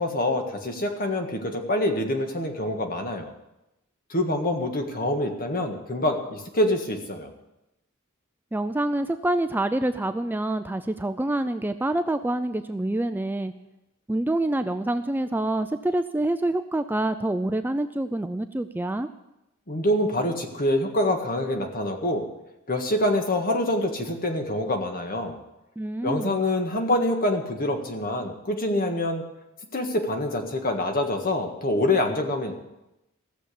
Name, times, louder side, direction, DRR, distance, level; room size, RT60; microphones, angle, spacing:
voice 1, 0.0-3.3 4.1-7.3 19.7-22.3 22.7-25.4 26.0-29.2 29.7-32.5, left 1 dB, 45° left, 4 dB, 1.7 m, -26 dB
voice 2, 8.5-13.5 14.1-19.1 25.8-26.4, right 1 dB, 10° right, 9 dB, 0.4 m, -26 dB
15.0 x 7.2 x 8.4 m, 0.92 s
head